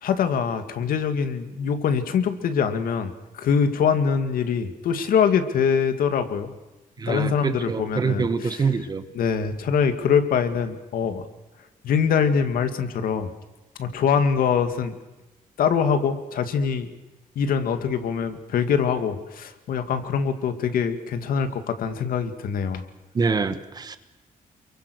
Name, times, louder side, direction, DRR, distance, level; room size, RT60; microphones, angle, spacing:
voice 1, 0.0-6.5 7.1-8.7 9.1-11.3 11.8-13.3 13.8-14.9 15.6-16.9 17.4-22.8, left 6 dB, 80° left, 9 dB, 2.3 m, -23 dB
voice 2, 7.0-9.0 23.1-24.0, right 4 dB, 30° right, 11 dB, 1.4 m, -25 dB
28.5 x 23.5 x 6.5 m, 1.0 s
wide cardioid pair, 170°, 14 cm